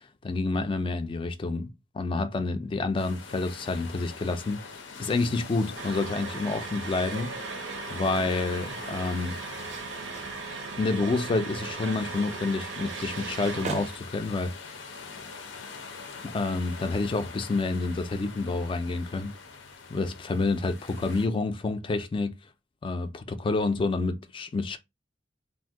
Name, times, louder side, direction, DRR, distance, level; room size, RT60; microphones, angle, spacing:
voice 1, 0.2-4.6 5.0-7.4 7.9-9.4 10.8-14.5 16.3-19.4 19.9-22.4 22.8-24.8, left 3 dB, 30° left, 0.3 m, -28 dB
sound 1, 3.0-21.3, left 4 dB, 90° left, 0.6 m, -44 dB
sound 2, 5.8-14.0, right 5 dB, 85° right, 0.5 m, -38 dB
sound 3, 6.7-17.1, right 3 dB, 40° right, 0.4 m, -47 dB
2.5 x 2.0 x 3.5 m
head